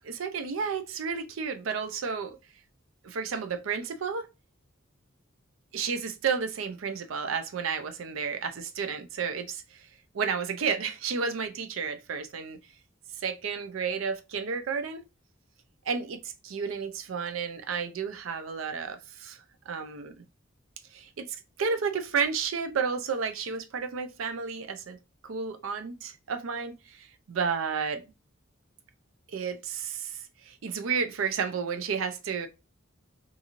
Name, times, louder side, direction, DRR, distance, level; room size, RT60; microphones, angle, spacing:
voice 1, 0.0-2.4 3.0-4.3 5.7-9.9 10.1-12.6 13.2-15.0 15.9-19.4 19.7-20.1 20.9-21.3 21.6-25.0 25.2-28.0 29.3-32.5, right 6 dB, 85° right, 0.5 m, -32 dB
2.9 x 2.6 x 2.4 m
head